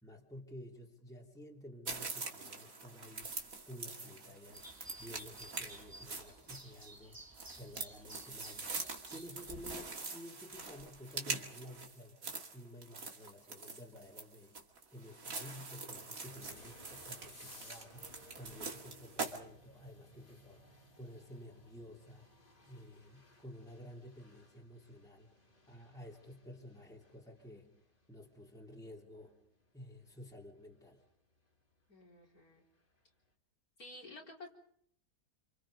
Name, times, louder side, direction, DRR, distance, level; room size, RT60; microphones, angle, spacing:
voice 1, 0.0-4.7 5.0-7.2 7.6-8.8 9.1-14.5 14.9-25.3 25.7-27.7 28.1-29.4 29.7-31.0, left 1 dB, ahead, -2 dB, 3.2 m, -52 dB
sound 1, 1.8-19.4, right 3 dB, 55° right, 2.8 m, -44 dB
sound 2, 4.5-9.5, right 1 dB, 15° right, 1.4 m, -55 dB
sound 3, 16.2-33.0, left 1 dB, 30° left, 3.5 m, -61 dB
voice 2, 31.9-32.6 33.8-34.5, left 2 dB, 60° left, -1 dB, 4.5 m, -52 dB
28.5 x 26.0 x 5.2 m, 0.66 s
omnidirectional pair, 1.7 m